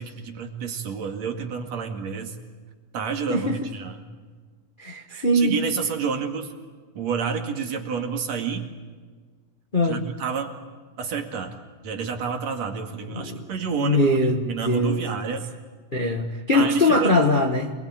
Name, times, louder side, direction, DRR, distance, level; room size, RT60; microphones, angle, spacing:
voice 1, 0.0-2.3 2.9-4.0 5.3-6.5 6.9-8.7 9.8-10.6 11.0-11.5 11.8-15.4 16.5-17.1, right 6 dB, 60° right, 4 dB, 3.3 m, -29 dB
voice 2, 4.8-5.6 9.7-10.0 13.1-15.1 15.9-17.7, left 1 dB, 35° left, 3 dB, 0.8 m, -22 dB
28.0 x 21.5 x 9.0 m, 1.5 s
omnidirectional pair, 3.6 m